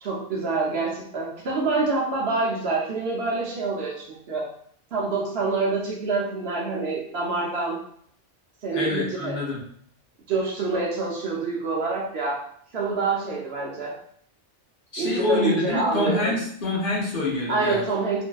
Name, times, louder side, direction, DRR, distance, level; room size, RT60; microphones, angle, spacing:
voice 1, 0.0-4.5 4.9-7.8 8.6-9.4 10.3-12.4 12.7-14.0 15.0-16.3 17.5-18.2, right 3 dB, 60° right, -3 dB, 0.8 m, -26 dB
voice 2, 8.7-9.6 14.9-17.8, left 2 dB, 50° left, -5 dB, 0.9 m, -26 dB
3.1 x 2.6 x 2.3 m, 0.63 s
omnidirectional pair, 1.3 m